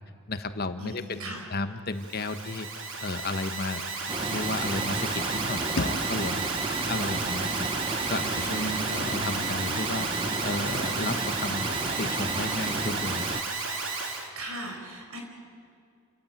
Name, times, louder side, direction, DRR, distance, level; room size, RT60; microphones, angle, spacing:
voice 1, 0.3-2.7 3.0-3.8 4.3-6.5 6.9-13.2, left 2 dB, 45° left, 10 dB, 1.1 m, -33 dB
voice 2, 0.8-1.5 8.5-9.1 14.3-15.2, right 2 dB, 75° right, 3 dB, 5.0 m, -38 dB
Alarm, 1.9-14.3, right 4 dB, 60° right, 2.9 m, -33 dB
Stream, 4.1-13.4, right 3 dB, 25° right, 0.8 m, -32 dB
sound 1, 5.8-8.7, left 1 dB, 85° left, 1.5 m, -38 dB
28.5 x 15.5 x 9.0 m, 2.4 s
head